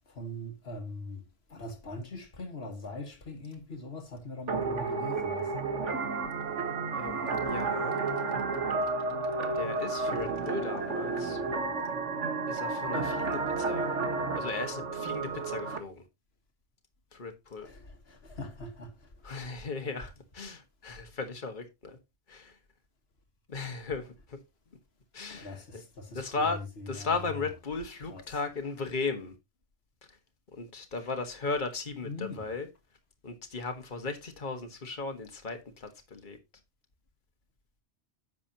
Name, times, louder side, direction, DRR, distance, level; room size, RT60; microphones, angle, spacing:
voice 1, 0.1-1.2 1.5-5.5 17.6-19.4 25.3-26.2 27.0-27.1 28.1-28.2 32.0-32.4, left 1 dB, 60° left, 1.9 m, -41 dB
sound 1, 4.5-15.8, right 4 dB, 80° right, 1.8 m, -31 dB
voice 2, 6.9-8.0 9.5-11.4 12.5-13.9 14.4-16.0 17.1-17.7 19.2-22.0 22.3-22.6 23.5-24.4 25.1-25.8 26.1-29.3 30.1-30.2 30.5-32.7 33.2-36.4, left 4 dB, 40° left, 1.7 m, -36 dB
10.0 x 7.4 x 2.9 m
omnidirectional pair, 1.2 m